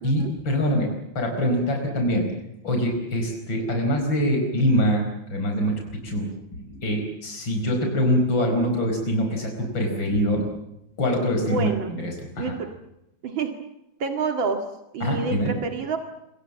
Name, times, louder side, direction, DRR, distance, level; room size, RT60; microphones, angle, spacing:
voice 1, 0.0-2.3 2.6-6.3 6.6-10.4 11.0-12.5 15.0-15.5, equal, 80° left, 3 dB, 5.5 m, -24 dB
voice 2, 11.4-11.9 12.4-12.7 13.2-13.5 14.0-14.6 14.9-16.0, right 5 dB, 85° right, 5 dB, 2.8 m, -28 dB
27.5 x 25.0 x 7.4 m, 0.88 s
omnidirectional pair, 2.1 m